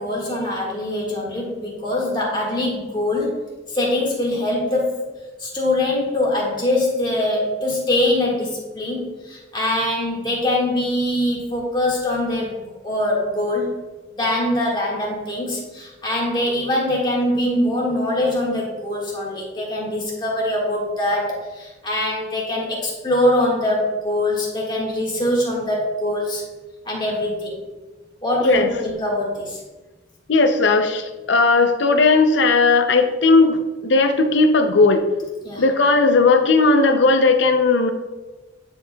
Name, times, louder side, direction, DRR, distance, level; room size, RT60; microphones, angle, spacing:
voice 1, 0.0-3.4 3.7-4.9 5.4-13.8 14.1-26.4 26.8-27.5 28.2-29.6 35.4-35.6, left 1 dB, 25° left, -3 dB, 1.7 m, -23 dB
voice 2, 30.3-35.0 35.6-37.9, left 3 dB, 70° left, 7 dB, 0.6 m, -16 dB
9.7 x 4.7 x 2.3 m, 1.2 s
head